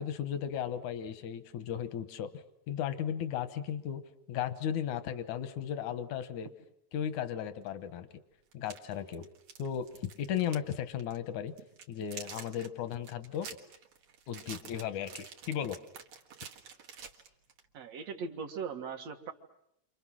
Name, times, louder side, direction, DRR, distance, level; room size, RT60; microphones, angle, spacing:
voice 1, 0.0-4.0 4.3-6.5 6.9-8.1 8.5-9.3 9.6-11.5 11.9-13.5 14.3-15.8, left 9 dB, 85° left, 11 dB, 2.6 m, -35 dB
sound 1, 7.7-7.8 8.5-10.7 11.0-11.2 11.6-17.7, right 6 dB, 80° right, 3.1 m, -48 dB
voice 2, 17.7-19.3, right 5 dB, 60° right, 4 dB, 2.8 m, -39 dB
30.0 x 26.5 x 6.3 m, 0.76 s
omnidirectional pair, 3.3 m